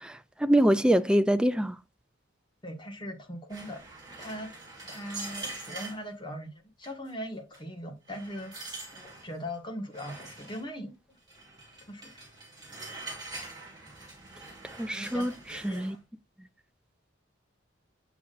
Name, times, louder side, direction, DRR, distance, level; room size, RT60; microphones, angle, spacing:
voice 1, 0.0-1.7 14.8-16.0, right 1 dB, 5° right, 0.3 m, -25 dB
voice 2, 2.6-3.8 4.2-4.5 4.9-11.2 11.9-12.1 14.9-16.0, equal, 25° left, 1.4 m, -40 dB
sound 1, 3.5-6.0 6.8-7.1 7.5-7.6 8.1-9.3 9.9-10.6 11.3-15.9, right 2 dB, 20° right, 2.5 m, -44 dB
7.2 x 5.9 x 2.5 m
head